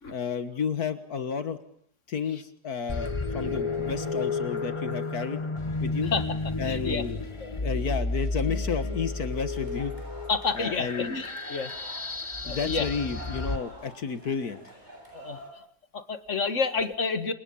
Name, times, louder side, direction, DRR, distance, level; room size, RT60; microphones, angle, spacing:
voice 1, 0.1-1.6 2.1-5.4 5.8-6.1 6.6-7.2 7.6-9.9 10.5-11.2 12.5-14.6, left 6 dB, 70° left, 11 dB, 1.9 m, -31 dB
sound 1, 2.9-13.6, left 3 dB, 20° left, 1.2 m, -32 dB
voice 2, 6.0-6.4 6.6-7.0 7.4-7.5 8.5-8.9 10.3-11.7 12.4-12.9 15.1-15.4 15.9-17.3, left 4 dB, 50° left, 10 dB, 2.0 m, -30 dB
sound 2, 9.5-15.5, right 1 dB, 25° right, 8.2 m, -47 dB
29.0 x 27.0 x 7.1 m, 0.66 s
omnidirectional pair, 1.7 m